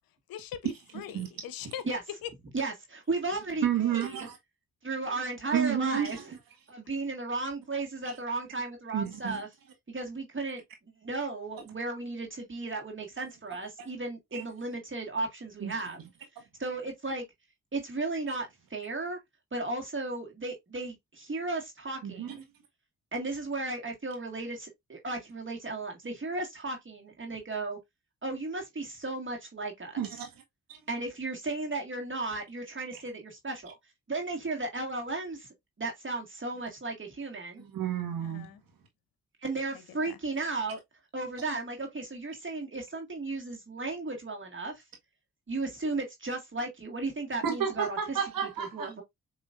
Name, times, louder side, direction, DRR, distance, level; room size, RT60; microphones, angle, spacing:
voice 1, 0.3-2.3 38.2-38.6 39.7-40.2, left 9 dB, 80° left, 0.7 m, -41 dB
voice 2, 0.9-1.3 3.6-4.4 5.5-6.2 8.9-9.4 13.8-13.9 14.3-14.4 15.6-15.7 22.0-22.3 30.0-30.3 30.7-30.8 32.9-33.0 37.6-38.5 47.4-48.9, right 8 dB, 75° right, 1.6 m, -31 dB
voice 3, 2.5-4.2 4.8-6.2 6.7-9.5 9.9-10.6 11.0-16.0 16.6-17.2 17.7-19.2 19.5-22.4 23.1-27.8 28.2-30.0 30.9-33.8 34.1-35.5 35.8-37.6 39.4-40.8 41.1-44.8 45.5-48.2 48.6-49.0, right 3 dB, 35° right, 1.8 m, -35 dB
6.2 x 3.1 x 2.4 m
supercardioid pair, 50°, 35 cm